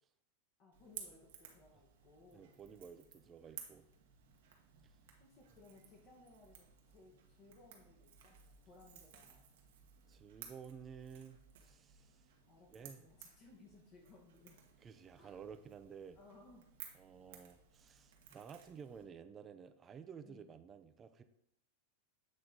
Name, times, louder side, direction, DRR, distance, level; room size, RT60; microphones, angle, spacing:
voice 1, 0.6-2.6 5.2-9.4 12.5-14.6 15.1-15.4 16.1-16.8 20.2-20.5, left 3 dB, 45° left, 0 dB, 1.3 m, -62 dB
Crackle / Crack, 0.7-19.0, right 8 dB, 70° right, 1.1 m, -58 dB
voice 2, 2.3-3.9 10.1-12.3 12.7-13.0 14.8-16.2 16.9-21.2, right 7 dB, 25° right, 10 dB, 0.5 m, -53 dB
8.0 x 3.2 x 3.9 m, 0.77 s
hypercardioid pair, 115°, 0 cm